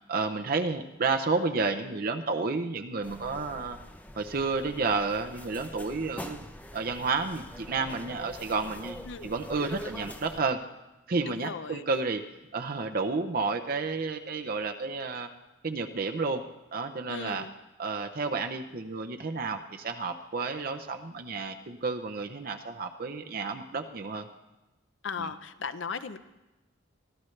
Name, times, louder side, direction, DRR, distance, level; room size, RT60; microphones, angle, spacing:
voice 1, 0.1-3.8 4.2-6.4 6.7-9.0 9.2-10.6 11.1-12.2 12.5-15.3 15.6-16.4 16.7-17.4 17.8-24.3 25.2-25.3, right 4 dB, 50° right, 5 dB, 0.7 m, -31 dB
sound 1, 3.0-10.4, left 1 dB, 10° left, 0.7 m, -44 dB
voice 2, 11.3-11.8 17.1-17.5 25.0-26.2, left 5 dB, 70° left, 12 dB, 0.8 m, -37 dB
23.5 x 15.0 x 3.3 m, 1.0 s
head